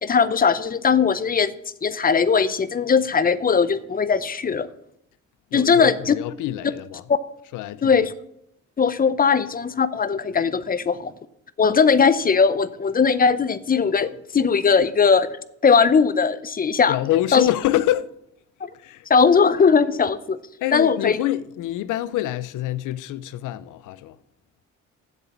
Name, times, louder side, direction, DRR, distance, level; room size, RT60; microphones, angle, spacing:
voice 1, 0.0-1.5 1.8-4.7 5.5-6.1 7.1-7.2 7.8-8.1 8.8-11.1 11.6-15.3 15.6-17.0 17.3-17.5 18.6-18.7 19.1-20.4 20.7-21.2, left 5 dB, 30° left, 0.6 m, -19 dB
voice 2, 5.5-7.1 7.5-8.1 16.9-18.1 18.8-19.1 20.6-24.2, left 13 dB, 85° left, 0.6 m, -26 dB
7.9 x 7.3 x 7.2 m
cardioid pair, 90°, 30 cm